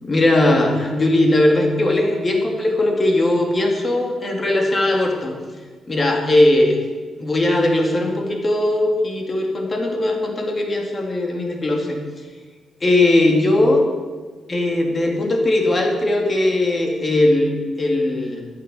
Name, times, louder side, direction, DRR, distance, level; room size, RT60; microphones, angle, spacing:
voice 1, 0.0-5.3 5.9-6.8 7.2-12.0 12.8-13.8 14.5-18.5, left 1 dB, 25° left, 2 dB, 2.4 m, -19 dB
13.5 x 10.5 x 7.0 m, 1.5 s
wide cardioid pair, 175°, 0 cm